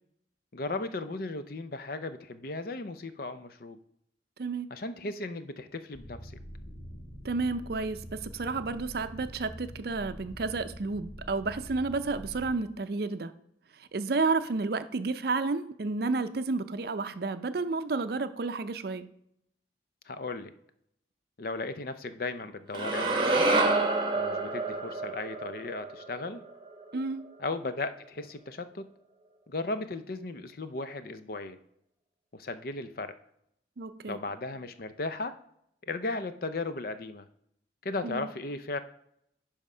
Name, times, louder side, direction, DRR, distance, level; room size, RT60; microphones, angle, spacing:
voice 1, 0.5-3.8 4.7-6.3 20.1-20.5 21.4-23.5 24.1-26.4 27.4-28.9 29.5-31.6 32.3-33.1 34.1-35.4 35.8-37.2 37.8-38.8, left 3 dB, 55° left, 11 dB, 0.6 m, -36 dB
sound 1, 5.9-12.5, equal, 25° left, 3.5 m, -45 dB
voice 2, 7.2-13.3 13.7-19.1 26.9-27.2 33.8-34.2 38.0-38.3, right 3 dB, 55° right, 11 dB, 0.5 m, -31 dB
sound 2, 22.7-27.0, right 2 dB, 25° right, 1.0 m, -28 dB
10.5 x 3.6 x 5.5 m, 0.75 s
head